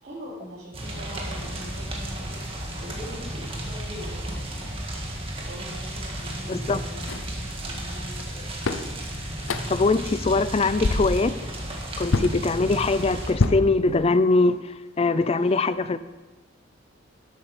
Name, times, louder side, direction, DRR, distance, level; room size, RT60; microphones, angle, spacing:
voice 1, 0.0-4.6 5.4-8.6 15.4-15.6, equal, 50° right, -11 dB, 3.0 m, -42 dB
sound 1, 0.7-13.3, right 1 dB, 30° right, 1.8 m, -33 dB
sound 2, 7.1-7.3 8.2-8.3 8.6-8.9 9.4-9.9 10.3-10.5 10.8-11.3 12.1-12.4 13.4-14.3, left 3 dB, 75° left, 0.7 m, -25 dB
voice 2, 9.7-11.3 12.0-14.6 15.0-16.0, left 3 dB, 30° left, 14 dB, 0.4 m, -22 dB
12.0 x 8.3 x 5.0 m, 1.2 s
head